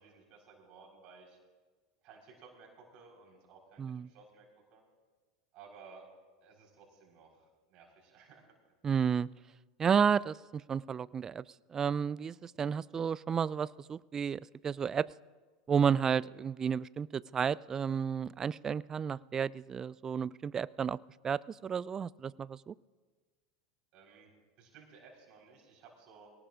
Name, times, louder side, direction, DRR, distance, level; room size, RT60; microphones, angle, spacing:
voice 1, 0.0-1.4 2.0-4.5 4.7-4.8 5.5-6.0 6.4-8.5 8.9-9.0 23.9-24.3 24.6-26.3, right 5 dB, 50° right, -1 dB, 4.3 m, -57 dB
voice 2, 3.8-4.1 8.8-9.3 9.8-10.4 10.7-11.4 11.7-15.1 15.7-21.0 21.2-22.7, right 7 dB, 25° right, 22 dB, 0.3 m, -32 dB
24.0 x 18.0 x 2.5 m, 1.4 s
hypercardioid pair, 85°, 2 cm